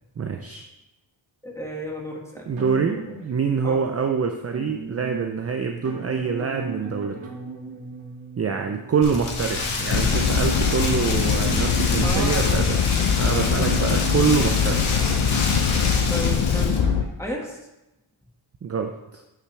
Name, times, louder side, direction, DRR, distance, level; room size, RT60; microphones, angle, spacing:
voice 1, 0.2-0.7 2.5-7.2 8.4-14.8 18.6-19.2, right 6 dB, 30° right, 4 dB, 0.6 m, -25 dB
voice 2, 1.4-2.5 3.6-3.8 12.0-12.6 16.1-16.8 17.2-17.6, equal, 5° left, -1 dB, 1.8 m, -33 dB
sound 1, 2.5-3.9 4.5-15.7 16.4-17.1, right 3 dB, 65° right, 2.2 m, -37 dB
Rain, 9.0-16.8, left 3 dB, 75° left, 1.8 m, -27 dB
sound 2, 9.9-17.0, left 7 dB, 50° left, 0.7 m, -23 dB
11.0 x 5.8 x 3.4 m, 0.97 s
cardioid pair, 115°, 49 cm